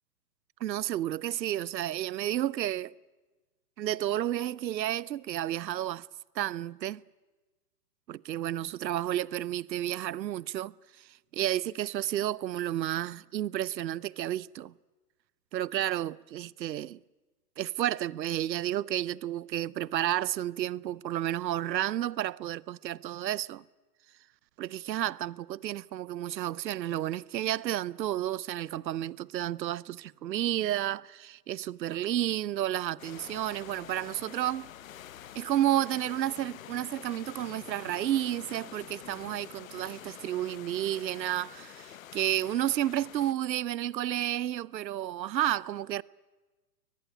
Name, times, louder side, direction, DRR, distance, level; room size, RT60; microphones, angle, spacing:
voice 1, 0.6-2.9 3.8-6.1 6.4-7.0 8.1-10.7 11.3-14.7 15.5-17.0 17.6-23.6 24.6-34.7 35.3-46.0, right 12 dB, 85° right, 0.7 m, -31 dB
sound 1, 33.0-43.3, left 11 dB, 55° left, 0.9 m, -47 dB
23.0 x 19.5 x 9.3 m
hypercardioid pair, 165°, 50 cm